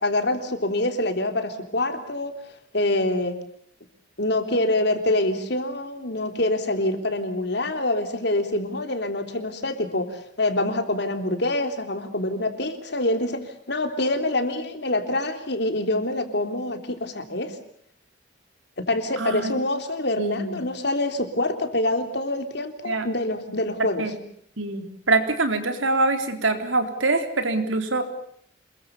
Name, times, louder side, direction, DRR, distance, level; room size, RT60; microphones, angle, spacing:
voice 1, 0.0-2.3 2.7-3.3 4.2-17.6 18.9-24.0, left 1 dB, 60° left, 7 dB, 3.6 m, -25 dB
voice 2, 19.2-19.5 20.2-20.7 22.8-23.1 24.0-24.2 24.6-28.0, right 2 dB, 90° right, 7 dB, 3.9 m, -24 dB
28.0 x 22.5 x 7.1 m, 0.64 s
head